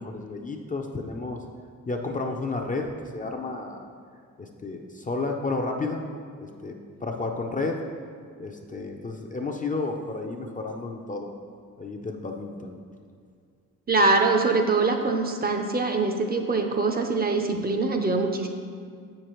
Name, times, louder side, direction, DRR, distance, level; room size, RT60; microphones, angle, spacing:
voice 1, 0.0-1.4 1.9-2.9 3.1-3.8 4.4-6.0 6.4-7.8 8.4-11.3 11.8-12.8, left 3 dB, 25° left, 2 dB, 0.4 m, -32 dB
voice 2, 13.9-18.5, right 3 dB, 30° right, 4 dB, 0.5 m, -23 dB
7.4 x 6.4 x 3.0 m, 2.2 s
wide cardioid pair, 140°, 32 cm